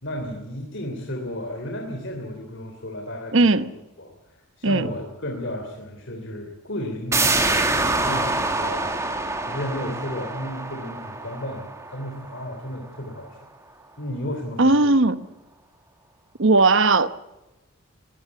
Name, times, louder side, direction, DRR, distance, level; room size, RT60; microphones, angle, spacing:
voice 1, 0.0-3.7 4.0-13.4 14.0-14.9, left 1 dB, 55° left, 3.2 m, -33 dB
voice 2, 3.3-3.7 4.6-4.9 14.6-15.2 16.4-17.1, right 3 dB, 60° right, 1.0 m, -17 dB
sound 1, 7.1-12.6 12.9-13.0, right 2 dB, 15° right, 2.0 m, -25 dB
20.5 x 17.5 x 8.5 m
head